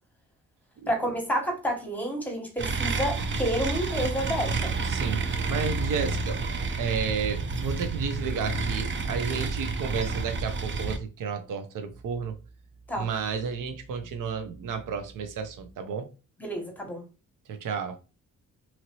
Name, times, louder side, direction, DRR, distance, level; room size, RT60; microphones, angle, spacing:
voice 1, 0.9-4.7 12.9-13.1 16.4-17.0, equal, 5° left, 1.2 m, -29 dB
sound 1, 2.6-11.0, right 4 dB, 35° right, 0.5 m, -29 dB
voice 2, 4.8-6.4 6.8-12.4 13.0-16.1 17.5-18.0, right 6 dB, 70° right, 0.7 m, -32 dB
2.9 x 2.6 x 2.9 m
cardioid pair, 75°, 33 cm